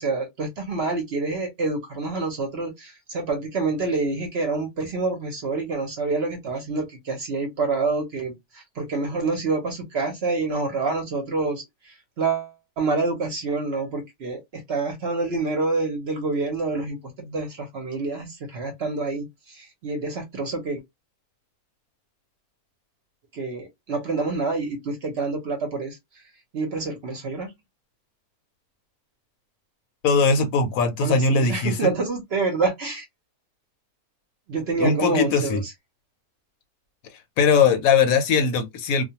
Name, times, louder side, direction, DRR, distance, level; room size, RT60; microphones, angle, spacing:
voice 1, 0.0-20.8 23.3-26.0 26.5-27.5 31.0-33.0 34.5-35.6, right 3 dB, 55° right, 0.7 m, -27 dB
voice 2, 30.0-31.9 34.8-35.6 37.4-39.0, left 5 dB, 75° left, 1.0 m, -20 dB
2.4 x 2.2 x 2.7 m
omnidirectional pair, 1.6 m